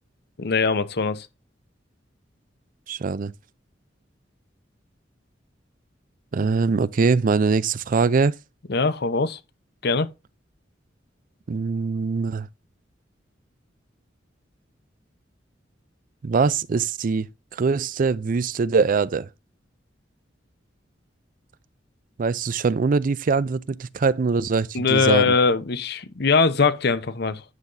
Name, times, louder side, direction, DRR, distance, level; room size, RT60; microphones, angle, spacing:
voice 1, 0.4-1.3 8.7-9.4 9.8-10.1 24.7-27.4, left 4 dB, 60° left, 0.8 m, -21 dB
voice 2, 2.9-3.3 6.3-8.3 11.5-12.5 16.2-19.3 22.2-25.3, right 4 dB, 50° right, 0.4 m, -22 dB
9.7 x 5.8 x 2.6 m
head